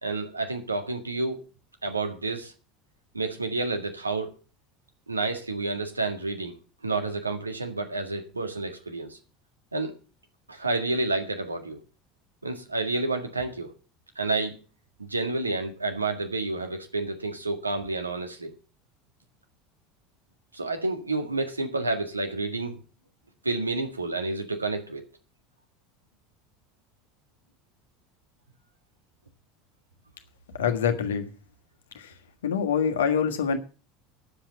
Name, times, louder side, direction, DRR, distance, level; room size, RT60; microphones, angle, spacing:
voice 1, 0.0-1.4 1.8-2.5 3.1-4.4 5.1-6.6 6.8-9.2 9.7-10.0 10.5-11.8 12.4-13.7 14.2-14.6 15.0-18.5 20.5-22.8 23.4-25.0, right 3 dB, 85° right, 1.7 m, -29 dB
voice 2, 30.6-31.3 31.9-32.1 32.4-33.6, left 7 dB, 70° left, 1.5 m, -25 dB
9.9 x 7.7 x 8.0 m
figure-of-eight pair, 70°, 0 cm